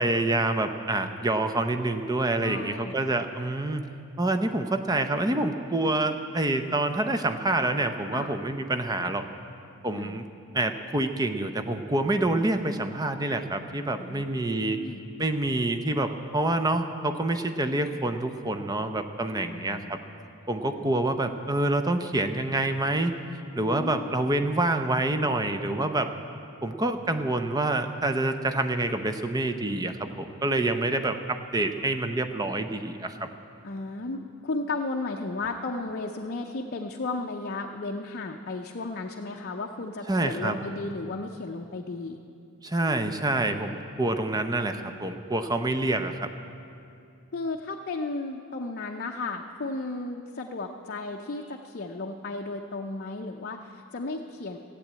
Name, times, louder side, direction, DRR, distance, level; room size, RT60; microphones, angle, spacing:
voice 1, 0.0-3.9 4.2-9.2 9.8-10.3 10.5-14.8 15.2-20.0 20.5-23.1 23.6-26.1 26.6-33.3 40.1-40.6 42.6-46.3, right 2 dB, 15° right, 7 dB, 0.6 m, -27 dB
voice 2, 2.4-3.0 8.1-8.3 9.9-10.2 14.0-15.0 19.3-20.0 20.7-20.9 23.7-24.1 33.6-42.2 47.3-54.6, left 3 dB, 45° left, 1 dB, 0.6 m, -34 dB
15.5 x 8.4 x 8.7 m, 2.5 s
head